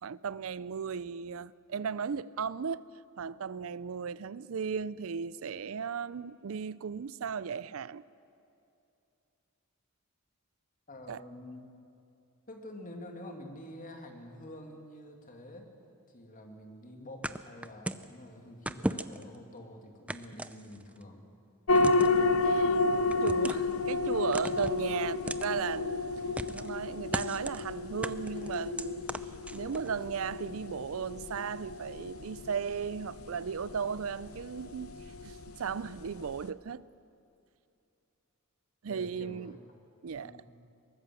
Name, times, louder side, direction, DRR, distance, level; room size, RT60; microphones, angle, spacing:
voice 1, 0.0-2.9 3.2-8.0 11.1-11.2 22.4-22.9 23.2-26.1 26.5-29.1 29.5-35.0 35.2-36.8 38.8-39.6 40.0-40.3, right 6 dB, 65° right, 0.5 m, -36 dB
voice 2, 10.9-11.7 12.5-15.6 16.1-21.2 38.9-39.6 40.2-40.5, left 1 dB, 40° left, 2.4 m, -47 dB
sound 1, 17.2-18.1 18.7-19.4 20.1-21.0 21.7-22.2 23.1-23.7 24.3-24.8 25.3-25.5 26.4-26.8 27.1-27.6 28.0-29.9, right 1 dB, 5° right, 0.5 m, -37 dB
sound 2, 21.7-36.5, left 3 dB, 70° left, 0.8 m, -31 dB
22.5 x 19.0 x 7.6 m
head